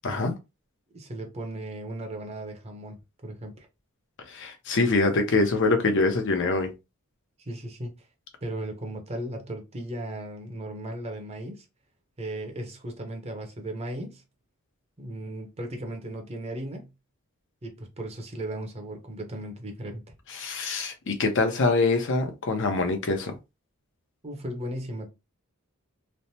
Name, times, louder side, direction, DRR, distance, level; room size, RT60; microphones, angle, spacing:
voice 1, 0.9-3.7 7.4-8.1 8.4-11.7 12.2-14.2 15.0-16.9 17.6-20.0 24.2-25.1, right 1 dB, 30° right, 0.7 m, -36 dB
voice 2, 4.3-6.7 20.3-23.3, left 3 dB, 60° left, 0.7 m, -24 dB
3.2 x 2.0 x 2.8 m
head